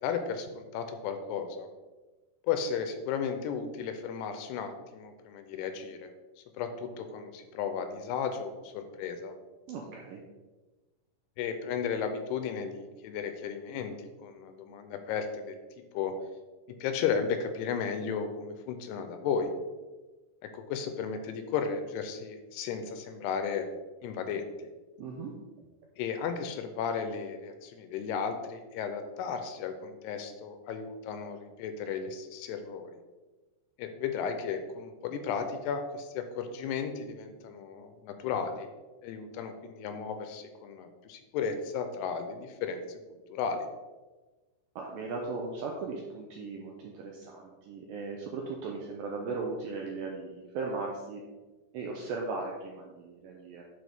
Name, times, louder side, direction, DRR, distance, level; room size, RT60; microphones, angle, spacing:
voice 1, 0.0-1.7 2.5-6.1 6.6-9.3 11.4-15.6 15.9-16.1 16.8-19.5 20.4-23.7 24.0-24.7 26.0-32.9 33.8-38.7 39.0-43.0 43.3-43.6, left 6 dB, 85° left, 7 dB, 2.6 m, -34 dB
voice 2, 9.7-10.2 25.0-25.3 44.8-51.2 51.7-53.6, right 3 dB, 85° right, 0 dB, 2.0 m, -37 dB
10.0 x 4.5 x 3.5 m, 1.2 s
omnidirectional pair, 4.9 m